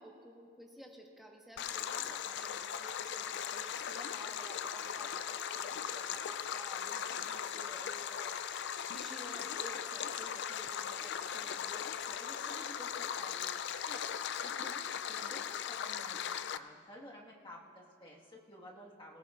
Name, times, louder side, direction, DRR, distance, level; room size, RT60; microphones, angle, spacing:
voice 1, 0.0-8.4 8.9-13.6, equal, ahead, -1 dB, 1.2 m, -53 dB
Stream, 1.6-16.6, left 8 dB, 55° left, 0.3 m, -38 dB
voice 2, 13.9-19.2, equal, 25° left, -3 dB, 1.6 m, -53 dB
19.0 x 18.5 x 2.5 m, 2.3 s
head